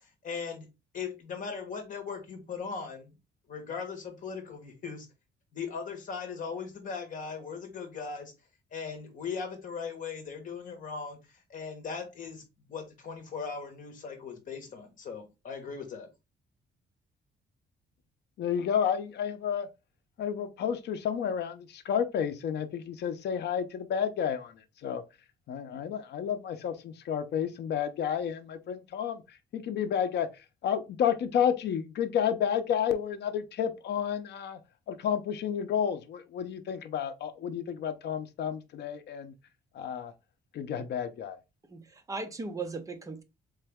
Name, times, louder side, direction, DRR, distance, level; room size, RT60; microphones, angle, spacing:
voice 1, 0.0-0.7 0.9-3.1 3.5-5.1 5.5-8.3 8.7-12.4 12.7-16.1, left 5 dB, 40° left, 1.3 m, -39 dB
voice 2, 18.4-19.7 20.2-25.0 25.5-34.6 34.9-39.3 39.7-40.1 40.5-41.4, left 8 dB, 60° left, 0.6 m, -31 dB
voice 3, 41.7-43.2, right 3 dB, 15° right, 0.5 m, -37 dB
3.9 x 3.3 x 3.4 m
cardioid pair, 180°, 20 cm